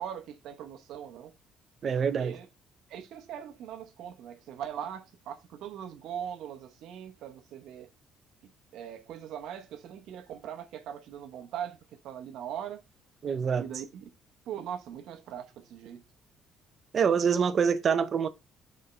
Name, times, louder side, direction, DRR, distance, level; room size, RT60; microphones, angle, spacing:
voice 1, 0.0-1.3 2.2-2.5 2.9-7.9 8.7-11.8 12.0-12.8 13.6-14.0 14.5-16.0, right 9 dB, 65° right, 0.9 m, -40 dB
voice 2, 1.8-2.3 13.2-13.6 16.9-18.3, right 6 dB, 35° right, 0.6 m, -25 dB
9.2 x 4.3 x 3.2 m
cardioid pair, 170°, 0 cm